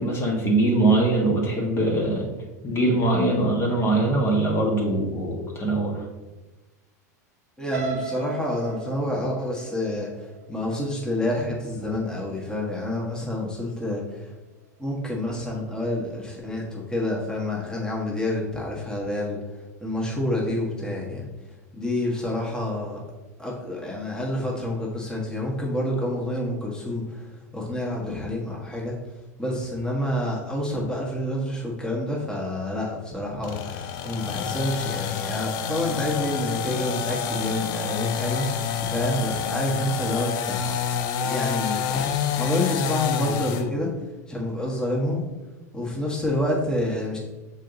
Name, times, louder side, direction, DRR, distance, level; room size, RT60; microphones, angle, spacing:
voice 1, 0.0-2.3 2.6-6.0, right 2 dB, 25° left, -1 dB, 1.5 m, -22 dB
voice 2, 7.6-14.3 14.8-21.3 21.7-23.0 23.4-29.0 29.4-40.7 41.2-43.9 44.3-45.2 45.7-47.2, left 1 dB, 10° left, -3 dB, 1.5 m, -28 dB
sound 1, 7.7-11.7 12.1-12.5 12.8-12.9, right 3 dB, 75° right, 0.9 m, -36 dB
sound 2, 33.4-43.7, left 7 dB, 45° left, 0.6 m, -28 dB
6.3 x 4.0 x 4.0 m, 1.1 s
hypercardioid pair, 95°, 9 cm